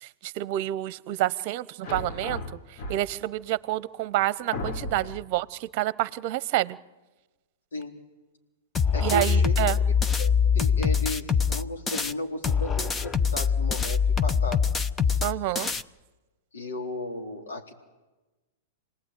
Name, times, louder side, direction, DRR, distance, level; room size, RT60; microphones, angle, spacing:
voice 1, 0.0-2.4 2.7-6.8 9.0-9.8 15.2-15.7, right 15 dB, 50° right, 18 dB, 0.9 m, -28 dB
sound 1, 1.8-3.4 4.0-4.1 4.5-5.4, left 2 dB, 50° left, 2.6 m, -35 dB
sound 2, 8.7-12.1 12.4-15.8, left 6 dB, 15° left, 0.8 m, -24 dB
voice 2, 8.9-9.5 10.2-14.7 15.1-15.2 16.5-17.7, left 1 dB, 75° left, 1 dB, 4.2 m, -35 dB
27.0 x 19.0 x 9.5 m, 1.2 s
hypercardioid pair, 105°, 0 cm